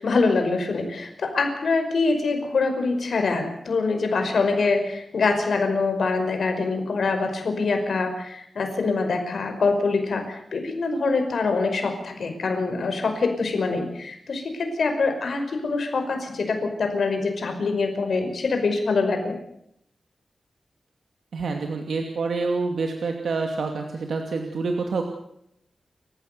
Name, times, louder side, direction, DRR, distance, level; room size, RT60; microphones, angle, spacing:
voice 1, 0.0-19.4, left 4 dB, 70° left, 5 dB, 5.4 m, -24 dB
voice 2, 21.3-25.0, right 4 dB, 90° right, 3 dB, 2.6 m, -27 dB
29.0 x 15.5 x 6.9 m, 0.75 s
wide cardioid pair, 130°, 0 cm